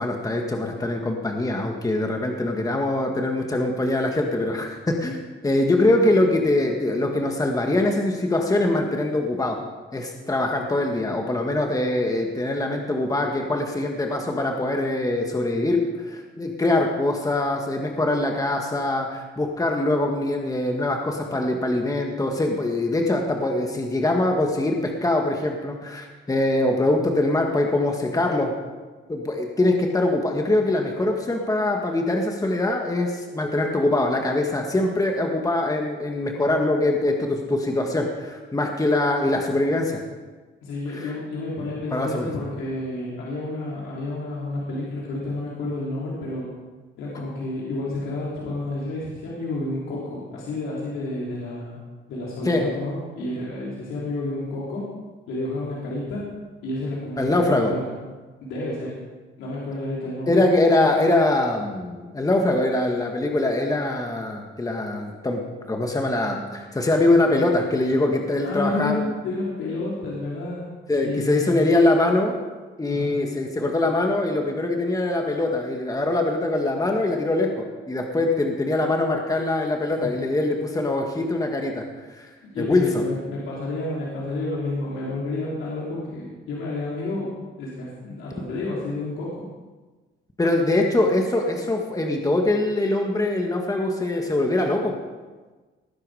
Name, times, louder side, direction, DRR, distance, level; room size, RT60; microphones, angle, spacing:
voice 1, 0.0-9.6 9.9-28.5 29.1-40.0 40.9-41.1 41.9-42.3 52.5-52.7 57.2-57.7 60.3-69.1 70.9-72.4 72.8-81.8 82.1-82.3 82.6-82.9 90.4-95.0, left 2 dB, 15° left, 2 dB, 1.8 m, -23 dB
voice 2, 40.6-46.5 47.0-51.8 52.1-54.9 55.3-56.3 56.6-58.0 58.4-59.0 59.4-60.5 68.4-70.7 71.0-71.6 72.9-73.3 82.4-89.4, left 2 dB, 85° left, -6 dB, 3.5 m, -30 dB
19.0 x 9.7 x 5.0 m, 1.3 s
cardioid pair, 90°, 20 cm